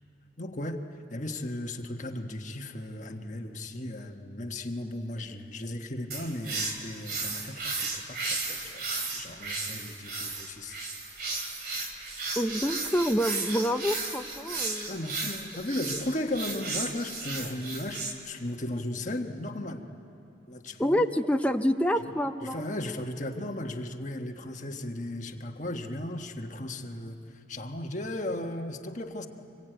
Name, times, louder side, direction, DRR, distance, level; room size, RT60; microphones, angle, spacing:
voice 1, 0.4-0.8 1.1-8.8 9.1-11.5 14.9-19.9 20.5-21.1 22.4-29.3, left 1 dB, 40° left, 3 dB, 1.4 m, -36 dB
sound 1, 6.1-18.1, right 3 dB, 50° right, 2.8 m, -34 dB
voice 2, 12.4-14.9 20.8-22.6, equal, 5° left, 5 dB, 0.6 m, -27 dB
26.0 x 22.0 x 9.2 m, 2.7 s
head